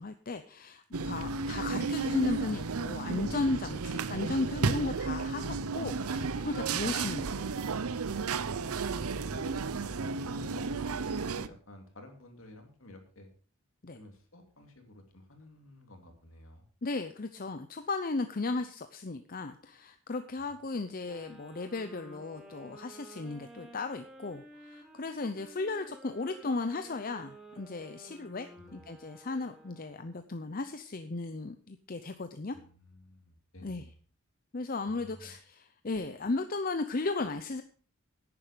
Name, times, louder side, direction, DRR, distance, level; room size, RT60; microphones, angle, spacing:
voice 1, 0.0-7.5 13.8-14.0 16.8-32.6 33.6-33.8 34.5-37.6, left 3 dB, 40° left, 9 dB, 0.6 m, -35 dB
sound 1, 0.9-11.5, right 4 dB, 75° right, 0.7 m, -33 dB
voice 2, 8.5-10.0 10.3-13.3 13.9-16.7 20.4-20.5 28.6-28.8 32.5-33.9 34.8-35.3, left 1 dB, 60° left, 4 dB, 2.8 m, -53 dB
sound 2, 21.0-30.3, right 1 dB, ahead, 2.5 m, -53 dB
10.5 x 9.8 x 5.0 m, 0.42 s
head